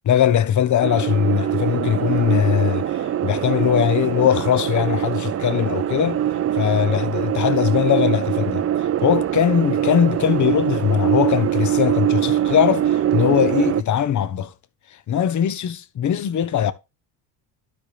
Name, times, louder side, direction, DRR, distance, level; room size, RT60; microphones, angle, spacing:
voice 1, 0.1-6.2 6.5-14.5 14.9-16.7, left 9 dB, 40° left, 1.0 m, -20 dB
sound 1, 0.8-13.8, right 11 dB, 30° right, 0.6 m, -23 dB
12.0 x 5.1 x 3.3 m
supercardioid pair, 85°, 46 cm